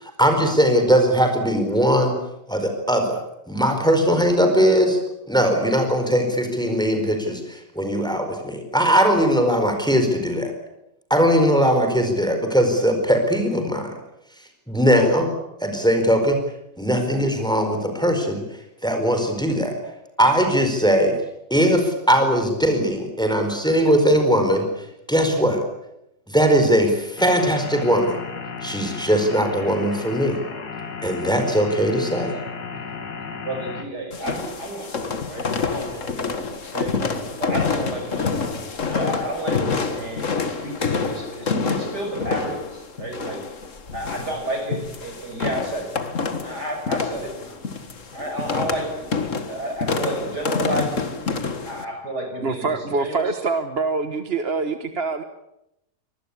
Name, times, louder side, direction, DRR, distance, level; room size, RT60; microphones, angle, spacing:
voice 1, 0.0-2.2 2.5-3.2 3.5-5.0 5.3-10.5 11.1-13.9 14.7-15.3 15.6-16.4 16.8-18.4 18.8-19.7 20.2-21.1 21.5-24.7 25.1-25.6 26.3-28.2 28.6-30.4 31.0-32.3, equal, ahead, 5 dB, 4.5 m, -20 dB
sound 1, 27.2-33.8, left 5 dB, 65° left, 2.7 m, -34 dB
voice 2, 33.4-37.0 37.4-38.5 38.9-43.4 43.9-46.0 46.4-47.6 48.1-49.0 49.5-51.1 51.7-53.4, right 1 dB, 65° right, 4 dB, 7.1 m, -31 dB
sound 2, 34.1-51.8, left 4 dB, 45° left, 2.0 m, -27 dB
voice 3, 52.4-55.2, right 4 dB, 40° right, 9 dB, 1.3 m, -25 dB
25.0 x 19.5 x 8.5 m, 0.85 s
omnidirectional pair, 1.9 m